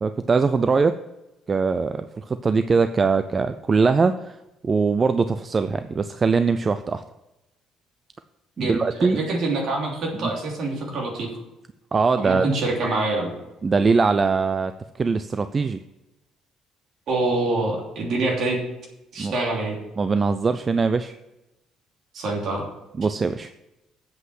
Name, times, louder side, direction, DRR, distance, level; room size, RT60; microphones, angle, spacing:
voice 1, 0.0-1.0 1.5-4.4 4.6-7.0 8.6-9.2 10.2-10.3 11.9-12.5 13.6-14.7 15.0-15.8 19.2-19.3 20.0-21.2 23.0-23.5, right 4 dB, 20° right, 10 dB, 0.3 m, -21 dB
voice 2, 8.6-11.3 12.2-13.3 17.1-18.6 19.1-19.8 22.1-22.6, right 2 dB, 45° right, -1 dB, 2.9 m, -25 dB
8.1 x 7.9 x 6.3 m, 0.96 s
cardioid pair, 180°, 0 cm